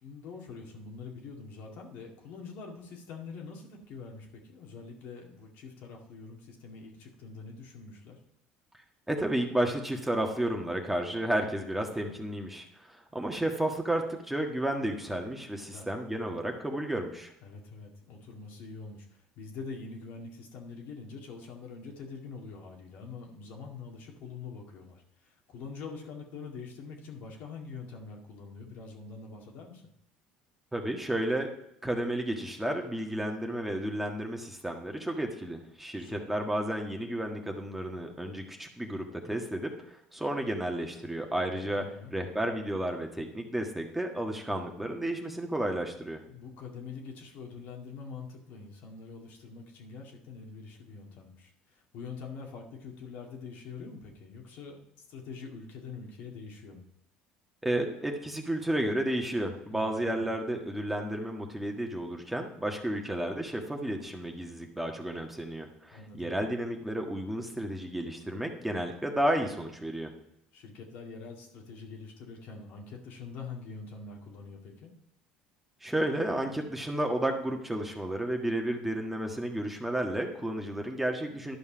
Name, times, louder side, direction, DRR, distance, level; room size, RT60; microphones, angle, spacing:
voice 1, 0.0-8.2 15.7-15.9 17.4-29.8 35.9-36.3 41.6-42.1 46.3-54.8 55.1-56.8 59.7-60.3 65.9-66.3 70.5-74.9, left 4 dB, 65° left, 0 dB, 2.1 m, -44 dB
voice 2, 9.1-17.3 30.7-31.5 31.8-41.8 42.1-46.2 57.6-70.1 75.8-81.6, right 1 dB, 5° right, 2 dB, 1.5 m, -32 dB
11.5 x 5.4 x 5.1 m, 0.77 s
supercardioid pair, 85°, 3 cm